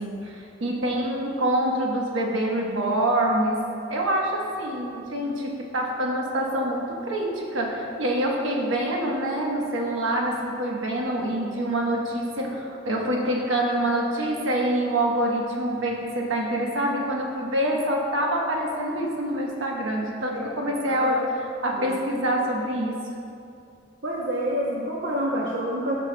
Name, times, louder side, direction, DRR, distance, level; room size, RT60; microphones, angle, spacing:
voice 1, 0.0-21.2 21.6-23.1, right 1 dB, 85° right, -1 dB, 1.1 m, -26 dB
voice 2, 20.9-21.3 21.7-21.9 24.0-26.0, equal, 65° right, -4 dB, 0.8 m, -28 dB
13.5 x 5.5 x 2.2 m, 2.6 s
head